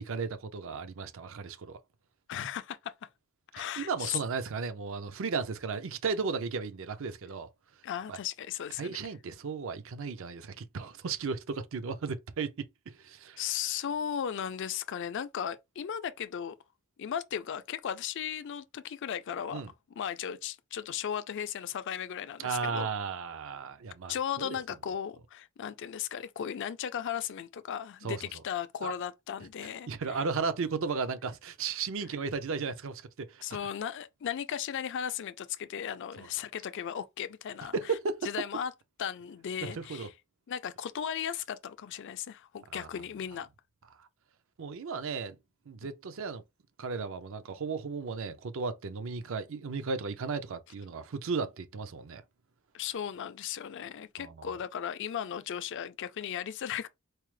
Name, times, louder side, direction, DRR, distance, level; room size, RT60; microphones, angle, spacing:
voice 1, 0.0-1.8 3.6-7.5 8.1-8.2 8.8-13.5 19.5-19.7 22.4-24.6 28.0-28.2 28.8-28.9 29.9-33.4 36.2-36.3 37.7-38.3 39.6-40.1 42.7-42.9 44.0-44.1 44.6-45.4 45.7-46.4 46.8-52.2 54.2-54.5, right 5 dB, 65° right, 0.5 m, -35 dB
voice 2, 2.3-3.1 3.5-4.2 7.8-9.0 13.4-16.6 17.0-19.6 20.0-22.9 24.1-29.9 33.4-37.7 38.2-38.7 39.0-40.1 40.5-43.5 45.8-45.9 52.7-56.9, left 9 dB, 60° left, 0.4 m, -36 dB
4.5 x 2.0 x 3.1 m
head